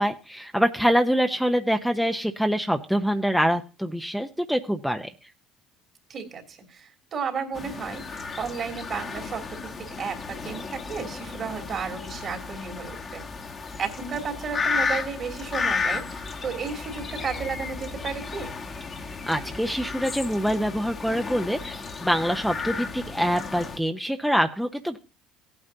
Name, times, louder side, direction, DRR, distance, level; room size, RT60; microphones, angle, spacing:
voice 1, 0.0-5.1 19.0-25.0, equal, ahead, 5 dB, 0.8 m, -25 dB
voice 2, 6.1-13.2 13.8-18.5, right 5 dB, 50° right, 2 dB, 2.9 m, -33 dB
sound 1, 7.5-23.8, left 4 dB, 40° left, 1.4 m, -33 dB
16.5 x 8.8 x 2.8 m, 0.33 s
hypercardioid pair, 70°, 0 cm